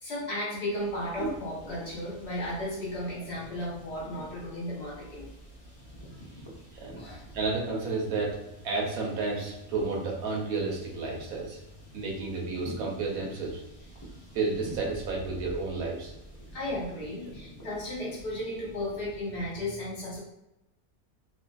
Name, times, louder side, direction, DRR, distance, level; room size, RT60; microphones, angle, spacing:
voice 1, 0.0-5.3 7.0-7.4 16.5-20.2, left 1 dB, 55° left, -6 dB, 1.0 m, -34 dB
sound 1, 0.7-19.6, right 1 dB, 30° left, 0.4 m, -48 dB
voice 2, 7.3-8.4 8.6-11.6 11.9-13.6 14.3-16.1, right 3 dB, 90° right, -2 dB, 1.2 m, -31 dB
2.8 x 2.5 x 2.3 m, 0.91 s
omnidirectional pair, 1.5 m